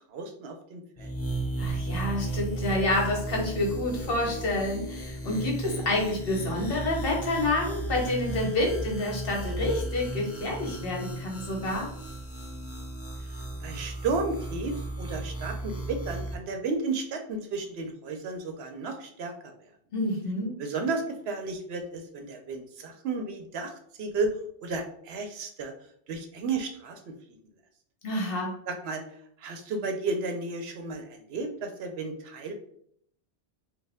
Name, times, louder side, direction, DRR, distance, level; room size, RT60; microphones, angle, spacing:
voice 1, 0.1-1.1 13.3-19.7 20.6-24.4 24.6-25.7 26.1-27.0 28.7-29.0 29.4-32.5, right 3 dB, 70° right, 5 dB, 0.8 m, -33 dB
sound 1, 1.0-16.3, right 2 dB, 25° left, 0.3 m, -35 dB
voice 2, 1.6-11.9 19.9-20.6 28.0-28.5, left 2 dB, 55° left, 0 dB, 1.1 m, -28 dB
4.2 x 2.2 x 3.4 m, 0.67 s
omnidirectional pair, 1.2 m